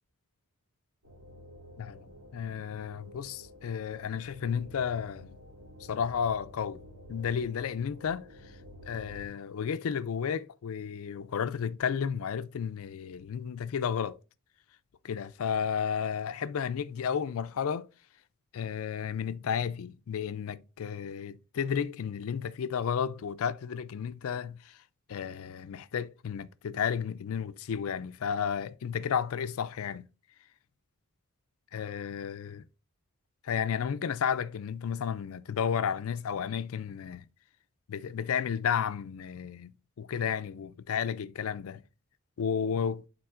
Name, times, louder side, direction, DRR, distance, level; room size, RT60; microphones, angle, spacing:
sound 1, 1.0-9.3, left 1 dB, 65° right, 2.8 m, -51 dB
voice 1, 1.8-5.4 5.8-6.8 7.1-8.6 8.9-14.2 15.0-17.9 18.5-24.8 25.1-30.1 31.7-32.6 33.4-37.3 37.9-39.7 40.0-41.8 42.4-43.1, left 7 dB, 70° left, 0.4 m, -32 dB
11.5 x 3.9 x 2.4 m
head